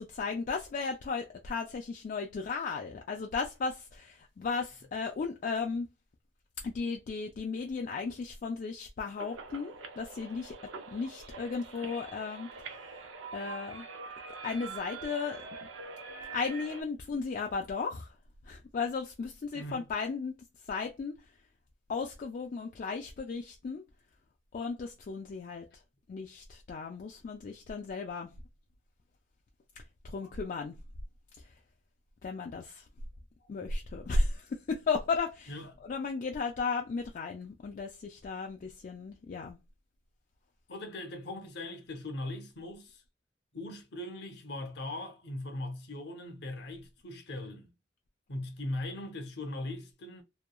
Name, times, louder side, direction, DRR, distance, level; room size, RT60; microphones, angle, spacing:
voice 1, 0.0-5.9 6.6-10.5 10.9-12.5 13.3-13.8 14.4-15.4 16.3-18.1 18.5-20.3 20.7-21.2 21.9-23.8 24.5-25.7 26.1-28.3 30.0-30.8 32.2-32.8 33.5-35.5 35.8-39.6, left 4 dB, 45° left, 0.3 m, -35 dB
sound 1, 9.2-16.8, right 4 dB, 75° right, 0.5 m, -44 dB
voice 2, 40.7-43.0 43.5-47.7 48.3-50.2, left 1 dB, 60° left, 0.7 m, -40 dB
3.0 x 2.2 x 2.2 m
head